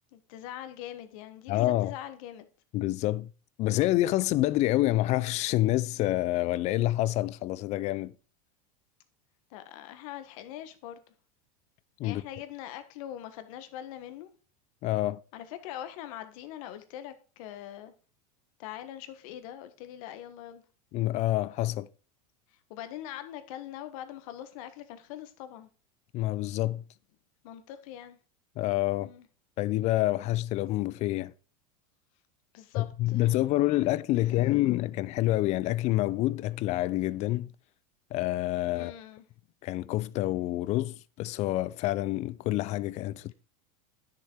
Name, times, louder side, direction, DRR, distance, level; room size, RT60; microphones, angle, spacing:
voice 1, 0.1-2.5 9.5-11.0 12.0-14.3 15.3-17.9 18.6-20.6 22.7-25.7 27.4-28.2 29.0-29.3 32.5-33.6 34.1-34.7 38.7-39.2, left 11 dB, 65° left, 1.5 m, -43 dB
voice 2, 1.5-1.9 2.7-3.3 3.6-8.1 12.0-12.2 14.8-15.2 20.9-21.9 26.1-26.8 28.6-29.1 29.6-31.3 32.7-37.5 38.1-38.9 39.6-43.3, left 16 dB, 35° left, 0.5 m, -27 dB
10.5 x 6.7 x 4.6 m
supercardioid pair, 145°, 19 cm